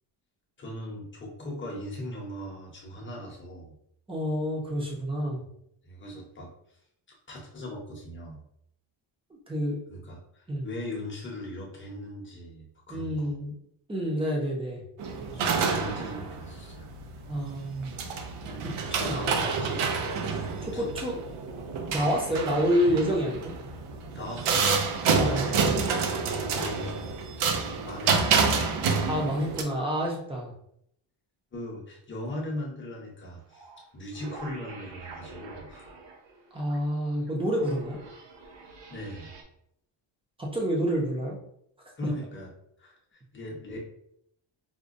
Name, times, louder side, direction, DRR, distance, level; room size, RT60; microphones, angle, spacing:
voice 1, 0.6-3.8 5.8-6.5 7.1-8.4 9.9-13.4 15.3-16.9 18.4-18.6 18.9-20.0 20.4-20.9 24.1-25.6 26.3-27.1 27.8-28.8 31.5-33.7 33.9-35.9 38.9-39.4 42.0-42.5 42.8-43.8, left 1 dB, 25° left, -2 dB, 0.7 m, -39 dB
voice 2, 4.1-5.4 9.5-9.8 10.5-10.7 12.9-13.5 13.9-14.8 17.3-17.9 20.6-21.2 21.9-23.5 25.1-25.8 29.1-30.5 36.5-38.0 40.4-41.4, equal, 10° right, -2 dB, 0.5 m, -28 dB
sound 1, 15.0-29.6, right 5 dB, 90° right, 0.6 m, -28 dB
sound 2, 33.5-33.8 34.1-39.4, right 3 dB, 55° right, 0.7 m, -46 dB
4.9 x 2.1 x 2.5 m, 0.73 s
wide cardioid pair, 180°, 49 cm